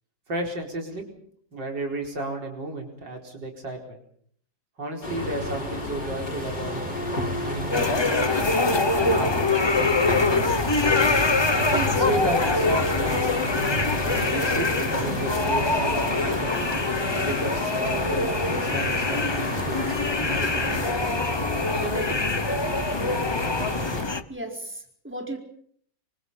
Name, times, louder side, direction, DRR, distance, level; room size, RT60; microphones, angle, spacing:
voice 1, 0.3-1.1 1.5-4.0 4.8-7.0 7.4-8.4 9.1-10.1 11.7-13.5 14.2-16.5 17.1-21.1 21.7-22.4, right 2 dB, 80° right, 2 dB, 5.4 m, -33 dB
sound 1, 5.0-24.0, left 1 dB, 65° left, 7.5 m, -30 dB
sound 2, 7.7-24.2, left 3 dB, 25° left, 0.6 m, -25 dB
voice 2, 24.3-25.4, right 1 dB, 5° right, 2 dB, 4.5 m, -35 dB
28.0 x 25.0 x 5.7 m, 0.63 s
omnidirectional pair, 1.9 m